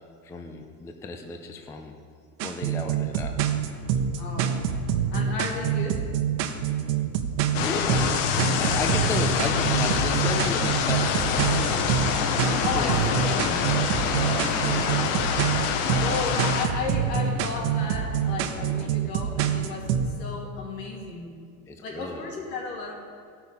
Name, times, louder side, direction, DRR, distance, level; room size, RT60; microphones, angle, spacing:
voice 1, 0.2-1.9 2.4-3.3 7.5-8.2 8.5-11.4 12.5-15.3 21.6-22.2, left 3 dB, 5° left, 4 dB, 0.3 m, -34 dB
sound 1, 2.4-20.1, right 8 dB, 80° right, 1.0 m, -26 dB
voice 2, 4.2-4.6 5.1-6.1 12.6-13.5 14.4-14.9 15.9-21.3 21.8-22.9, left 3 dB, 85° left, -2 dB, 2.7 m, -34 dB
sound 2, 7.5-16.7, left 7 dB, 60° left, 1.0 m, -26 dB
sound 3, 11.3-18.9, left 3 dB, 40° left, 1.4 m, -35 dB
17.0 x 5.9 x 4.2 m, 2.2 s
supercardioid pair, 125°, 47 cm